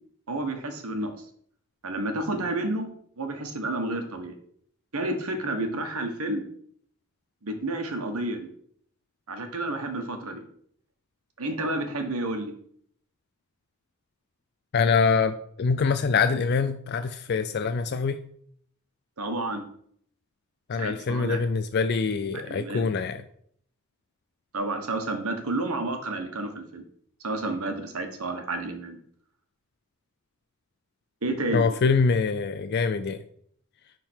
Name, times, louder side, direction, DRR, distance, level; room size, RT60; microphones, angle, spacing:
voice 1, 0.3-1.1 1.8-2.9 3.2-4.3 4.9-6.4 7.4-8.5 9.3-10.4 11.4-12.5 19.2-19.7 20.8-21.4 22.3-22.9 24.5-26.8 27.2-29.0 31.2-31.7, right 2 dB, 85° right, 5 dB, 1.3 m, -30 dB
voice 2, 14.7-18.2 20.7-23.2 31.5-33.2, left 5 dB, 50° left, 10 dB, 0.4 m, -24 dB
10.0 x 3.7 x 4.4 m, 0.64 s
head